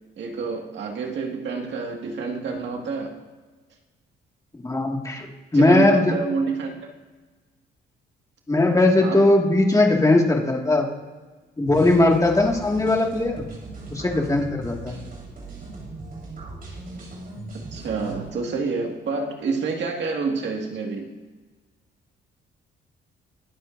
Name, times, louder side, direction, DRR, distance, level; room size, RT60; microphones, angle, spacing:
voice 1, 0.2-3.2 5.5-6.9 9.0-9.3 17.7-21.1, right 4 dB, 65° right, 1 dB, 2.0 m, -28 dB
voice 2, 4.6-5.3 5.5-6.1 8.5-10.9 11.6-13.4 13.9-15.0, left 2 dB, 15° left, 1 dB, 2.0 m, -19 dB
sound 1, 11.7-18.3, right 3 dB, 45° right, 4.3 m, -38 dB
23.0 x 7.9 x 2.7 m, 1.3 s
cardioid pair, 90°, 20 cm